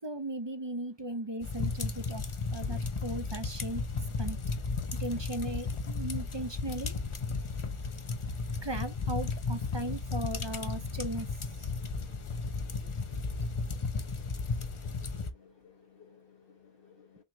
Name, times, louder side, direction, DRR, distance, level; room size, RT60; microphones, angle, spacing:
voice 1, 0.0-3.8 4.2-4.4 5.0-7.0 8.6-11.3 11.6-11.7, right 1 dB, 30° right, 0.6 m, -37 dB
sound 1, 1.4-15.3, left 4 dB, 35° left, 0.6 m, -34 dB
voice 2, 7.3-8.7 11.7-17.2, left 6 dB, 65° left, 1.1 m, -59 dB
5.9 x 3.2 x 2.7 m
omnidirectional pair, 1.0 m